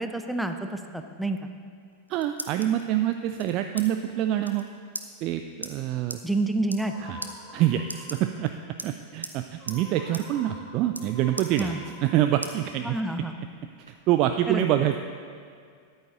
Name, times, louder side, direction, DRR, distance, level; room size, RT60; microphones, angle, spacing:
voice 1, 0.0-1.4 6.2-6.9 11.6-11.8 12.8-13.3 14.5-14.7, right 2 dB, ahead, 6 dB, 0.7 m, -28 dB
sound 1, 1.8-2.8 3.4-3.9 4.1-4.2 4.4-4.6 4.9-5.1 5.6-5.7 6.1-6.2 6.6-6.9 7.2-7.3 7.8-8.5 8.8-9.4 9.7-9.8 10.1-10.3 10.5-11.1 11.4-12.1 12.4-12.6 13.0-13.9, right 1 dB, 85° right, 0.7 m, -38 dB
voice 2, 2.1-4.7 5.2-6.2 7.0-7.2 7.5-8.5 8.8-11.7 12.0-13.0 13.9-15.0, right 12 dB, 40° right, 8 dB, 0.4 m, -26 dB
sound 2, 6.8-8.4 9.5-12.9, left 1 dB, 15° left, 2.6 m, -47 dB
13.5 x 10.5 x 3.9 m, 2.2 s
figure-of-eight pair, 90°, 0 cm